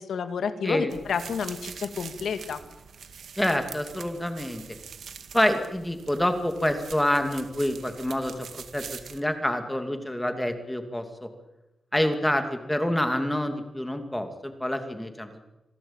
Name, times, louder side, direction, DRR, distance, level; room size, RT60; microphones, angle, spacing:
voice 1, 0.0-2.6, left 6 dB, 85° left, 9 dB, 2.2 m, -30 dB
sound 1, 0.9-9.2, right 6 dB, 75° right, 2.0 m, -44 dB
voice 2, 3.4-4.6 5.3-11.3 11.9-15.4, left 1 dB, 5° left, 7 dB, 2.6 m, -27 dB
27.0 x 17.5 x 8.9 m, 0.99 s
wide cardioid pair, 150°, 0 cm